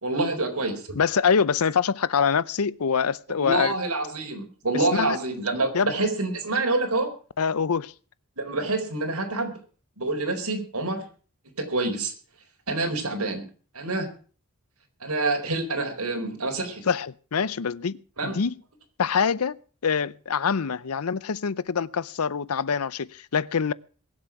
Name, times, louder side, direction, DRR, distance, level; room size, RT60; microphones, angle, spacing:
voice 1, 0.0-0.9 3.4-7.1 8.4-9.6 10.0-11.0 11.6-12.1 12.7-13.4 13.7-14.1 15.0-16.8 18.2-18.4, right 2 dB, 85° right, 4.4 m, -27 dB
voice 2, 0.9-3.7 4.7-5.2 5.7-5.9 7.4-7.9 16.9-18.0 18.2-18.5 19.0-23.7, left 6 dB, 75° left, 0.6 m, -25 dB
22.5 x 7.7 x 5.9 m
head